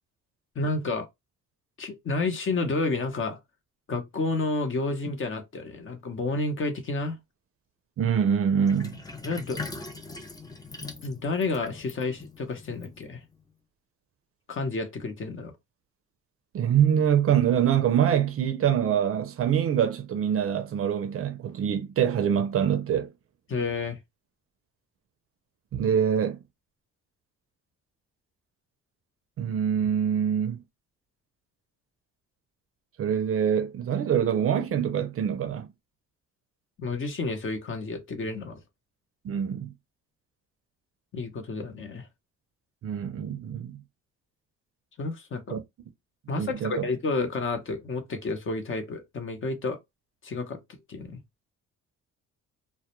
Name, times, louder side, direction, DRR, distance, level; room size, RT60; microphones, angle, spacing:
voice 1, 0.6-1.1 1.8-3.4 3.9-7.2 9.2-9.6 11.0-13.2 14.5-15.5 23.5-24.0 36.8-38.6 41.1-42.0 45.0-45.6 46.3-49.8 50.2-51.2, left 3 dB, 40° left, 0.7 m, -30 dB
voice 2, 8.0-9.0 16.5-23.1 25.7-26.4 29.4-30.6 33.0-35.7 39.2-39.7 42.8-43.8 45.5-45.6 46.4-46.9, right 8 dB, 50° right, 0.5 m, -25 dB
Sink (filling or washing), 8.7-13.4, left 3 dB, 15° left, 0.4 m, -41 dB
2.2 x 2.1 x 2.9 m
cardioid pair, 90°, 30 cm